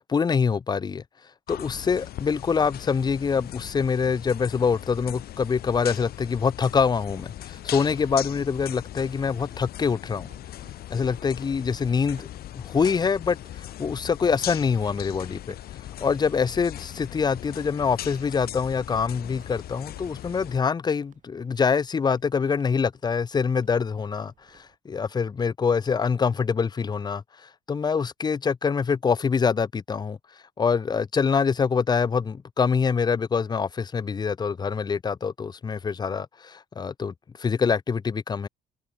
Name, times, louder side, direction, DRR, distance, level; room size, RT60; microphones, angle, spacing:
voice 1, 0.1-1.0 1.5-10.3 10.9-12.3 12.5-15.6 16.0-30.2 30.6-38.5, left 5 dB, 25° left, 0.7 m, -25 dB
sound 1, 1.5-20.6, left 13 dB, 65° left, 3.1 m, -39 dB
sound 2, 5.5-24.8, right 9 dB, 50° right, 7.5 m, -61 dB
cardioid pair, 110°, 17 cm